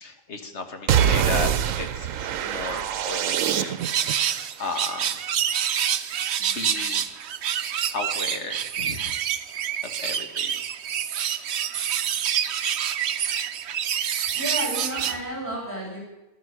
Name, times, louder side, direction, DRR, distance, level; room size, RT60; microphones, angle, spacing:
voice 1, 0.0-3.8 4.6-5.2 6.4-7.1 7.9-9.1 10.0-10.6 11.2-11.6, left 4 dB, 60° left, 5 dB, 1.8 m, -34 dB
sound 1, 0.9-4.1, right 9 dB, 85° right, 1.1 m, -24 dB
sound 2, 3.8-15.2, right 9 dB, 65° right, 0.9 m, -27 dB
voice 2, 14.3-16.0, right 1 dB, 15° right, -2 dB, 7.6 m, -32 dB
14.5 x 12.5 x 6.8 m, 1.0 s
omnidirectional pair, 1.3 m